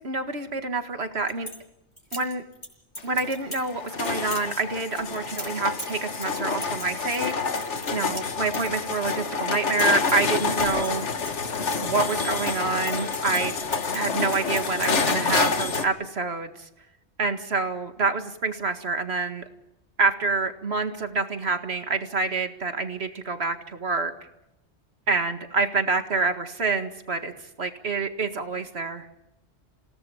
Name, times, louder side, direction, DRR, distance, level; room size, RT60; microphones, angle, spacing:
voice 1, 0.0-1.5 2.1-2.4 3.0-11.0 11.4-11.5 11.8-13.5 13.9-16.7 17.2-19.4 20.0-24.1 25.1-27.3 27.6-29.1, right 4 dB, 65° right, 7 dB, 2.2 m, -27 dB
sound 1, 1.0-1.6 2.0-2.7 2.9-3.7 4.0-4.5 4.9-9.3 9.5-10.3 10.6-12.1 12.4-15.1 15.4-15.8, equal, 40° left, 6.2 m, -39 dB
sound 2, 3.0-15.8, left 4 dB, 85° left, 1.9 m, -28 dB
28.0 x 18.0 x 7.2 m, 0.89 s
omnidirectional pair, 1.2 m